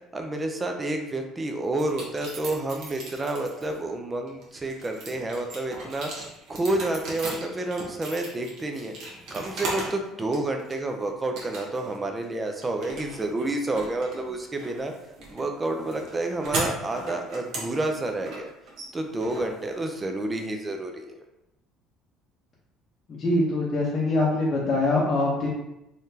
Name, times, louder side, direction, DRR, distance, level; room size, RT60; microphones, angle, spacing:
voice 1, 0.1-6.1 6.5-8.9 9.3-14.9 15.3-18.5 18.9-21.2, right 2 dB, 15° right, 4 dB, 0.4 m, -29 dB
sound 1, 1.8-3.8 4.3-10.0 10.3-10.9 11.4-12.0 12.2-20.2, right 2 dB, 55° right, 1.1 m, -37 dB
voice 2, 23.1-25.5, left 2 dB, 25° left, -7 dB, 0.8 m, -23 dB
3.9 x 3.2 x 2.7 m, 0.88 s
cardioid pair, 160°, 0 cm